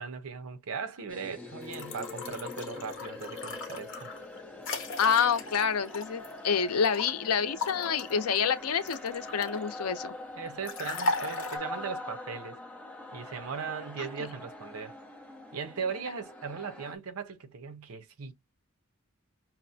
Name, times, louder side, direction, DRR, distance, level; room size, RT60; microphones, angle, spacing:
voice 1, 0.0-4.1 10.4-12.6 13.1-14.9 15.5-18.3, right 5 dB, 70° right, 0.6 m, -38 dB
sound 1, 1.1-16.9, left 2 dB, 5° left, 0.7 m, -43 dB
sound 2, 1.6-7.1 7.6-9.7 10.7-11.6, left 3 dB, 60° left, 0.8 m, -37 dB
voice 2, 5.0-10.2 14.0-14.1, left 7 dB, 80° left, 0.5 m, -28 dB
5.6 x 2.1 x 2.6 m
head